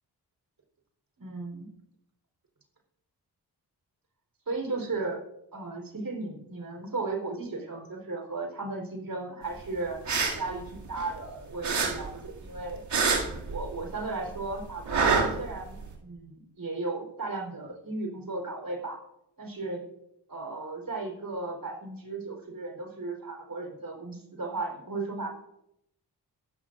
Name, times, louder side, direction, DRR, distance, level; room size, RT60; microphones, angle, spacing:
voice 1, 1.2-1.7 4.5-5.2 5.5-10.1 10.4-12.8 13.5-19.0 19.4-19.8 20.3-25.3, right 3 dB, 50° right, 1 dB, 4.1 m, -35 dB
sound 1, 9.9-11.3 11.6-14.0 14.3-15.9, right 4 dB, 70° right, 2.6 m, -27 dB
15.0 x 12.5 x 2.6 m, 0.81 s
supercardioid pair, 40°, 44 cm